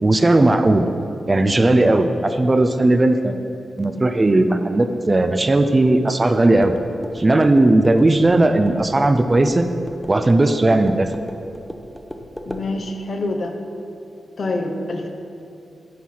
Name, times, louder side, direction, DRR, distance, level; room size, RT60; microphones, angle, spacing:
voice 1, 0.0-0.9 1.3-3.4 3.8-6.7 7.1-9.7 10.1-11.1, right 2 dB, 30° right, 8 dB, 0.4 m, -16 dB
sound 1, 6.2-12.7, equal, 10° left, 0.7 m, -37 dB
voice 2, 12.5-13.6 14.4-15.1, left 2 dB, 60° left, 4 dB, 0.7 m, -26 dB
9.2 x 4.6 x 4.4 m, 2.6 s
cardioid pair, 60°, 0 cm